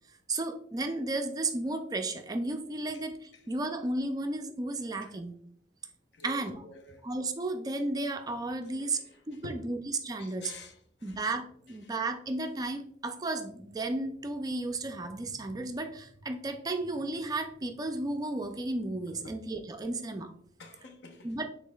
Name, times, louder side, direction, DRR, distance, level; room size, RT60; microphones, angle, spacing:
voice 1, 0.3-5.4 6.2-6.6 7.0-9.0 9.3-10.5 11.0-20.3 21.2-21.5, right 2 dB, 20° right, 0.3 m, -33 dB
voice 2, 6.1-7.1 8.6-9.7 10.2-11.2 11.8-11.9 19.1-19.4 20.6-21.3, left 2 dB, 65° left, 0.6 m, -49 dB
5.2 x 3.8 x 2.2 m
head